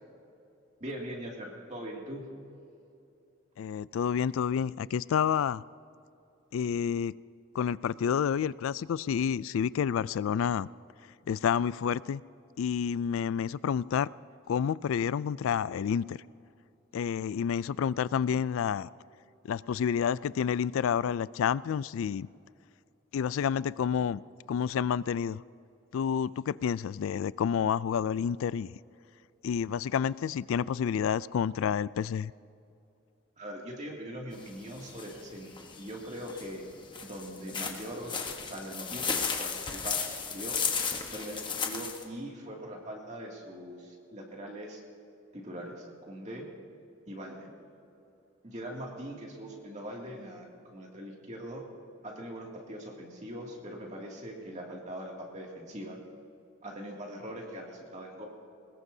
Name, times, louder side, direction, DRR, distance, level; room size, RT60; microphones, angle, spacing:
voice 1, 0.8-2.3 33.4-36.7 37.0-40.6 41.1-44.8 45.3-46.4 47.1-47.5 48.4-51.6 52.0-56.0 56.6-58.2, equal, 35° right, -1 dB, 2.4 m, -41 dB
voice 2, 3.6-5.6 6.5-7.1 7.5-10.7 11.3-12.2 12.6-14.1 14.5-16.2 16.9-18.9 19.4-22.3 23.1-24.2 24.5-25.4 25.9-28.7 29.4-32.3, left 7 dB, 80° left, 19 dB, 0.3 m, -29 dB
sound 1, 34.3-42.0, left 5 dB, 25° left, 1.1 m, -34 dB
22.0 x 20.5 x 2.8 m, 2.7 s
head